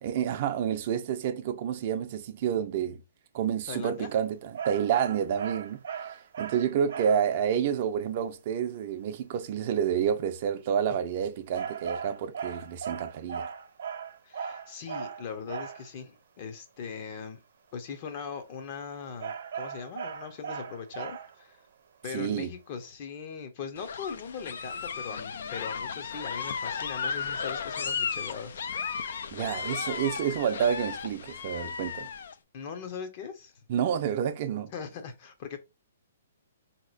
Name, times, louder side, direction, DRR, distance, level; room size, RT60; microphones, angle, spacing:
voice 1, 0.0-3.0 3.3-13.5 22.1-22.5 29.3-32.1 33.7-34.7, right 8 dB, 45° right, 0.5 m, -29 dB
voice 2, 3.7-4.1 14.2-17.4 17.7-21.6 22.0-28.6 32.5-33.5 34.7-35.6, left 6 dB, 40° left, 0.7 m, -40 dB
sound 1, 4.5-7.3 11.5-15.9 19.2-21.5, right 7 dB, 65° right, 0.8 m, -37 dB
sound 2, 23.8-32.3, left 6 dB, 70° left, 0.4 m, -35 dB
4.0 x 2.9 x 2.5 m
hypercardioid pair, 145°, 0 cm